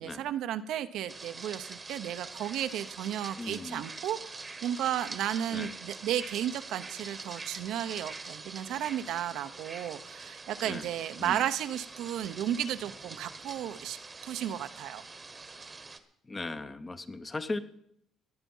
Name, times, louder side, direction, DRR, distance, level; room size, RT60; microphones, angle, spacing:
voice 1, 0.0-14.0 14.2-15.0, right 11 dB, 75° right, 10 dB, 0.8 m, -34 dB
sound 1, 1.1-16.0, right 3 dB, 20° right, 1.1 m, -45 dB
voice 2, 3.4-3.8 5.5-5.7 10.6-10.8 11.2-11.4 16.3-17.6, left 2 dB, 20° left, 10 dB, 0.8 m, -37 dB
17.5 x 10.5 x 5.5 m, 0.74 s
cardioid pair, 140°, 0 cm